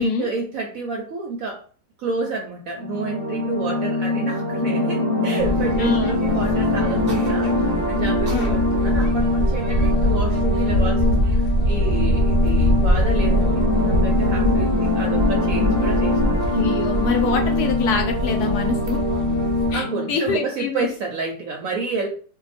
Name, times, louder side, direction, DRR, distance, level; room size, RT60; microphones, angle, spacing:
voice 1, 0.0-1.6 2.0-16.5 19.7-22.1, right 3 dB, 70° right, 2 dB, 0.8 m, -30 dB
sound 1, 2.8-20.1, left 2 dB, 25° left, 0.8 m, -23 dB
sound 2, 5.4-19.7, equal, 90° right, 0.5 m, -23 dB
voice 2, 5.8-6.2 8.3-8.6 16.5-19.0 19.7-20.9, left 5 dB, 70° left, 4 dB, 1.0 m, -25 dB
2.8 x 2.2 x 4.0 m, 0.42 s
omnidirectional pair, 1.9 m